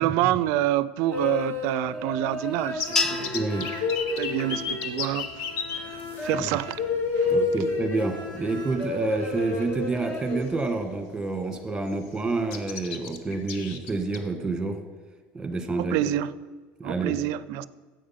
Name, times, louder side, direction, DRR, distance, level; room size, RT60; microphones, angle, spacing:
voice 1, 0.0-3.3 4.2-5.5 5.8-6.8 7.2-7.4 15.8-16.3 16.8-17.7, right 14 dB, 70° right, 0.4 m, -27 dB
sound 1, 1.1-10.5, left 3 dB, 45° left, 2.1 m, -30 dB
sound 2, 2.8-5.8 6.8-6.9 7.2-7.3 9.0-9.1 9.5-9.8 10.2-10.9 11.3-11.4 11.7-12.1 12.5-14.2, left 7 dB, 75° left, 1.0 m, -32 dB
sound 3, 3.0-5.4, left 1 dB, 10° left, 0.5 m, -35 dB
voice 2, 3.0-3.7 6.3-6.5 7.3-14.8 15.3-16.0 16.8-17.2, right 3 dB, 10° right, 1.4 m, -28 dB
9.9 x 7.9 x 5.7 m
supercardioid pair, 120°, 5 cm